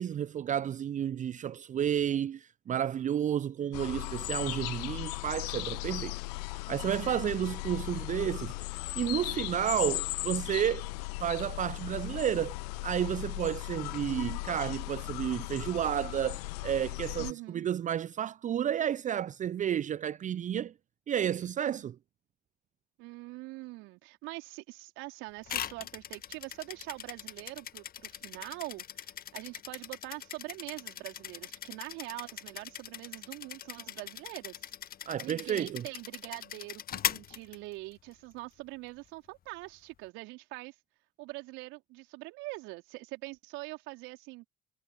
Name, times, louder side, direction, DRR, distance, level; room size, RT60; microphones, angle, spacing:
voice 1, 0.0-6.1 6.5-8.5 8.9-10.9 11.2-12.6 12.8-20.7 21.1-22.0 35.1-35.8, right 10 dB, 35° right, 0.7 m, -31 dB
sound 1, 3.7-17.3, left 25 dB, 70° left, 0.5 m, -37 dB
voice 2, 17.2-17.7 21.7-21.9 23.0-34.6 35.2-40.8 41.2-44.5, right 22 dB, 65° right, 4.0 m, -44 dB
sound 2, 25.5-38.1, left 10 dB, 45° left, 1.6 m, -40 dB
figure-of-eight pair, 55°, 21 cm